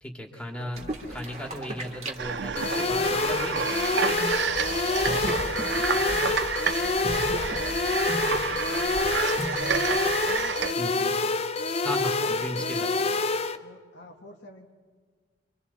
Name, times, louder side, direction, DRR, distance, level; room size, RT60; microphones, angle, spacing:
voice 1, 0.0-0.8 1.1-3.6 6.2-6.4 10.8-11.1 11.8-12.9, equal, 5° left, 0 dB, 2.4 m, -36 dB
voice 2, 0.6-1.2 2.2-3.8 4.6-6.2 6.5-11.0 12.1-13.3 13.6-14.7, equal, 70° left, 2 dB, 1.7 m, -47 dB
sound 1, 0.7-10.2, right 1 dB, 35° right, 2.1 m, -37 dB
sound 2, 2.2-10.7, right 7 dB, 65° right, 0.5 m, -30 dB
sound 3, 2.6-13.6, left 3 dB, 35° left, 0.5 m, -27 dB
26.5 x 25.0 x 4.2 m, 1.5 s
head